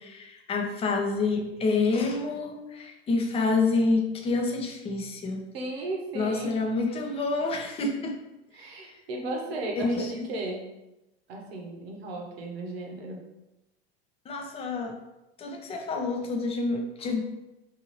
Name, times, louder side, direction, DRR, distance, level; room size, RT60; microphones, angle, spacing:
voice 1, 0.0-5.4 6.1-8.2 8.6-8.7 9.8-10.1 14.3-15.0 15.4-17.2, left 3 dB, 20° left, 3 dB, 0.5 m, -28 dB
voice 2, 5.5-6.5 8.5-10.6 11.3-13.2, right 2 dB, 70° right, 1 dB, 0.9 m, -35 dB
2.7 x 2.6 x 3.0 m, 0.96 s
hypercardioid pair, 90°, 32 cm